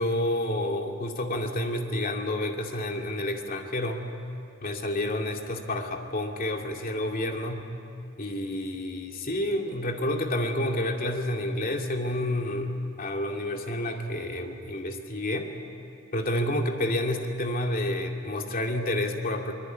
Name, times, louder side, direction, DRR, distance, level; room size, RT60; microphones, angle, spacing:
voice 1, 0.0-4.1 4.6-7.7 8.2-15.5 16.1-19.5, left 1 dB, 45° left, 2 dB, 2.4 m, -29 dB
23.5 x 22.0 x 9.3 m, 2.6 s
head